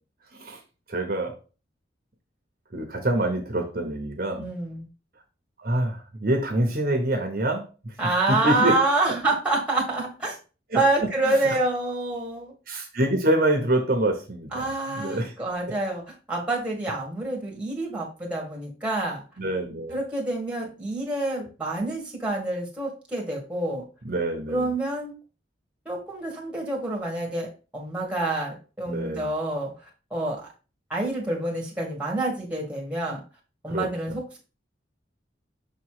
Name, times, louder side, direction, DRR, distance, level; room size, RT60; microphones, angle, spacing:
voice 1, 0.9-1.4 2.7-4.5 5.6-8.8 9.1-9.2 10.7-10.8 11.2-11.6 12.7-15.3 15.7-15.8 19.4-20.0 21.4-21.5 24.0-24.7 28.9-29.3 33.7-33.9, right 1 dB, 50° right, 3 dB, 1.0 m, -26 dB
voice 2, 4.4-4.9 8.0-10.4 10.7-12.5 14.5-16.0 16.3-19.2 19.9-23.8 24.5-25.1 25.8-29.7 30.1-30.5 30.9-33.2 33.6-34.4, right 2 dB, 5° right, -2 dB, 1.7 m, -27 dB
6.6 x 3.2 x 4.8 m, 0.34 s
head